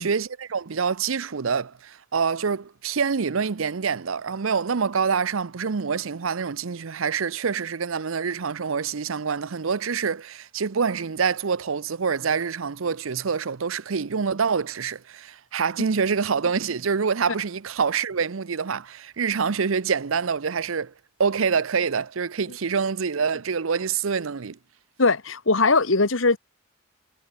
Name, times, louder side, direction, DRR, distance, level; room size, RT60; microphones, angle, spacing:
voice 1, 0.0-20.9 21.2-24.6, right 6 dB, 80° right, 0.7 m, -26 dB
voice 2, 25.0-26.4, left 3 dB, 70° left, 1.7 m, -20 dB
head